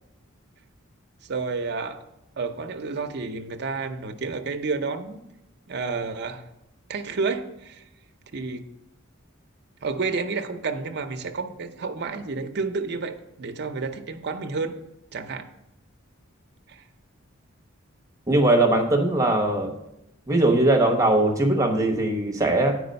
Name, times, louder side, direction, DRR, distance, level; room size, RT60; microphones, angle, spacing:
voice 1, 1.2-2.0 2.4-5.2 5.7-6.5 6.9-7.8 8.3-8.6 9.8-14.8 15.1-15.5 16.7-16.8, right 4 dB, 55° right, 6 dB, 0.7 m, -30 dB
voice 2, 18.3-19.7 20.3-22.7, right 2 dB, 15° right, 2 dB, 1.1 m, -20 dB
8.8 x 4.9 x 5.2 m, 0.87 s
head